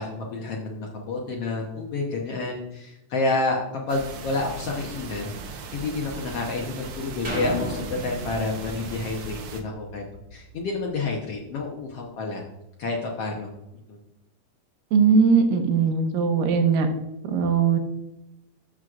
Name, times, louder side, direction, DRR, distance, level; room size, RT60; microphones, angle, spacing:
voice 1, 0.0-3.6 3.9-10.0 10.3-12.4 12.8-13.5 13.9-14.0, left 3 dB, 70° left, -1 dB, 1.5 m, -29 dB
sound 1, 3.9-9.6, right 4 dB, 65° right, 1.9 m, -38 dB
sound 2, 7.2-11.0 11.5-11.6, equal, 25° right, 1.5 m, -35 dB
voice 2, 14.9-16.9 17.2-17.8, right 5 dB, 85° right, 6 dB, 2.6 m, -20 dB
13.5 x 6.3 x 2.4 m, 0.92 s
omnidirectional pair, 3.8 m